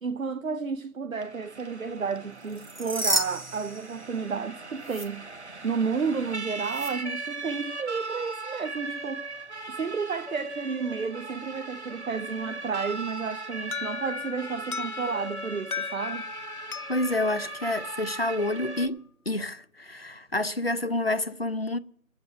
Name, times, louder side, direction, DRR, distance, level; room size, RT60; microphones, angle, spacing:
voice 1, 0.0-5.3 5.6-9.3 9.7-16.3, right 5 dB, 70° right, 0.7 m, -31 dB
Siren, 1.2-18.9, right 3 dB, 50° right, 1.0 m, -39 dB
sound 1, 2.5-4.5 4.8-5.1 6.7-6.9, right 1 dB, 35° right, 1.1 m, -31 dB
Alarm, 13.7-18.5, left 7 dB, 85° left, 0.8 m, -38 dB
voice 2, 16.9-21.8, left 2 dB, 45° left, 0.6 m, -28 dB
22.0 x 7.8 x 5.5 m
figure-of-eight pair, 175°, 42 cm